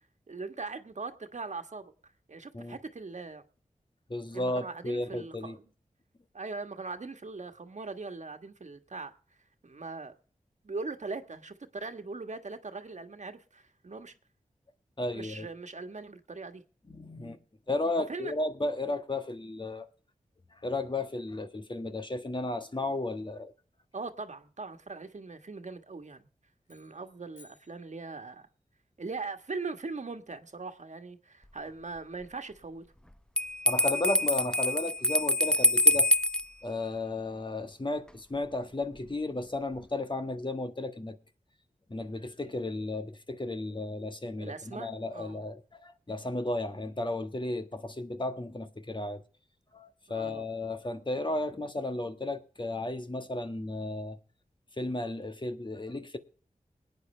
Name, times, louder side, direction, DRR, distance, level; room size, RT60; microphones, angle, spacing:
voice 1, 0.3-1.9 2.3-3.4 4.3-5.7 6.3-9.1 9.6-10.1 10.6-14.1 15.1-16.6 18.0-18.3 23.9-26.3 26.7-28.5 29.0-32.8 44.4-45.5 50.1-50.4, right 3 dB, 60° right, 1.4 m, -40 dB
voice 2, 4.1-5.6 15.0-15.5 16.9-17.4 17.7-19.9 20.5-23.5 33.6-36.1 36.6-41.2 41.9-49.2 49.7-54.2 54.8-56.2, left 2 dB, 35° left, 1.4 m, -34 dB
sound 1, 26.6-28.6, left 3 dB, 70° left, 5.5 m, -62 dB
Bell, 33.4-36.5, left 1 dB, 5° left, 0.6 m, -25 dB
21.0 x 9.4 x 3.3 m
cardioid pair, 40°, 14 cm